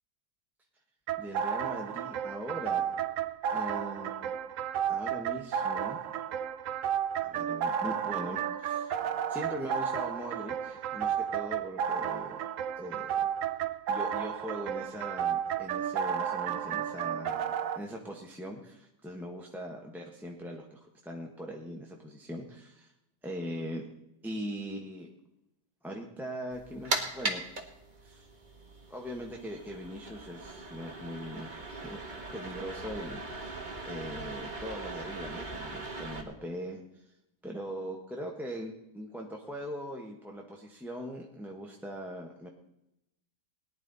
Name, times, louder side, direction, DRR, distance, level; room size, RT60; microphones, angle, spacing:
sound 1, 1.1-17.8, right 8 dB, 60° right, 0.9 m, -32 dB
voice 1, 1.2-2.8 3.5-4.3 4.9-6.0 7.2-9.0 9.3-12.4 12.8-13.1 13.9-22.9 23.2-23.8 24.2-25.1 25.8-27.4 28.0-28.3 28.9-32.0 32.3-36.8 37.4-42.5, equal, ahead, -1 dB, 1.2 m, -41 dB
sound 2, 26.5-36.2, right 2 dB, 30° right, 1.5 m, -39 dB
18.5 x 10.5 x 4.1 m, 0.85 s
omnidirectional pair, 1.8 m